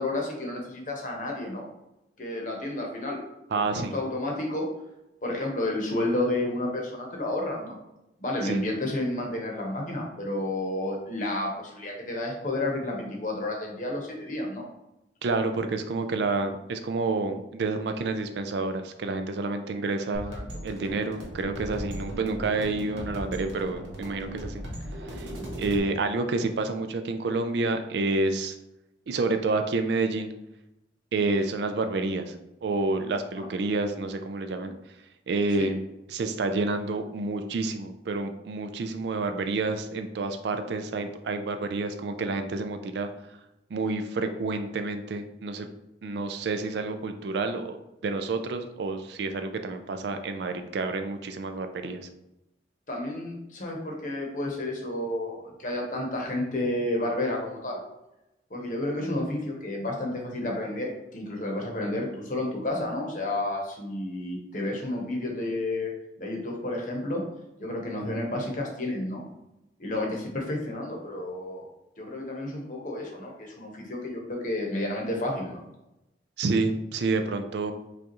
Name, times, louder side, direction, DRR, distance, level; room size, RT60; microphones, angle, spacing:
voice 1, 0.0-1.6 2.2-3.2 3.5-4.7 5.2-7.8 8.2-14.6 20.3-20.4 33.4-33.5 34.6-34.7 35.6-35.7 52.9-57.8 58.5-65.9 66.2-67.2 67.6-69.2 69.8-71.6 72.0-75.6, left 1 dB, 45° left, -1 dB, 0.9 m, -31 dB
voice 2, 3.5-3.9 8.4-8.6 15.2-20.3 20.6-24.6 25.0-25.3 25.6-28.6 29.1-30.3 31.1-32.4 32.6-34.7 35.3-35.8 36.1-43.1 43.7-45.7 46.0-47.8 48.0-52.1 76.4-77.7, right 3 dB, 65° right, 8 dB, 0.3 m, -29 dB
sound 1, 20.1-25.8, equal, 80° right, 1.1 m, -37 dB
5.0 x 2.4 x 2.9 m, 0.90 s
head